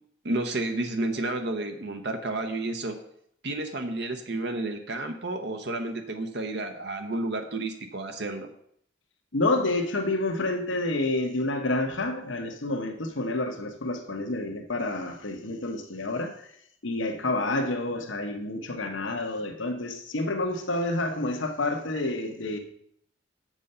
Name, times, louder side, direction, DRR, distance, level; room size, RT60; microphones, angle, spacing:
voice 1, 0.2-3.0 3.4-8.5, right 2 dB, 60° right, 6 dB, 0.8 m, -31 dB
voice 2, 9.3-16.5 16.8-22.6, left 2 dB, 85° left, 5 dB, 1.1 m, -29 dB
7.7 x 6.1 x 5.5 m, 0.69 s
head